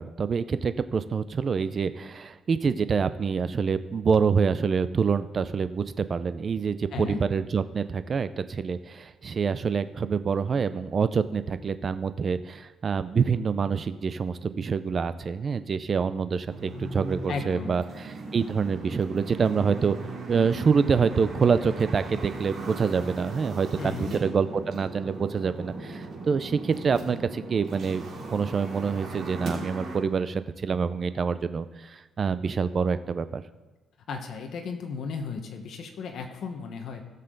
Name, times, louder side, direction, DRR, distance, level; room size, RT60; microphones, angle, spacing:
voice 1, 0.0-20.0 20.3-28.0 28.3-33.4, right 5 dB, 40° right, 13 dB, 0.5 m, -26 dB
voice 2, 6.9-7.2 17.3-17.8 23.8-24.1 34.1-37.0, left 5 dB, 65° left, 4 dB, 1.2 m, -35 dB
sound 1, 16.5-30.0, right 2 dB, 60° right, 3.3 m, -38 dB
17.0 x 6.8 x 3.9 m, 1.2 s
cardioid pair, 130°, 0 cm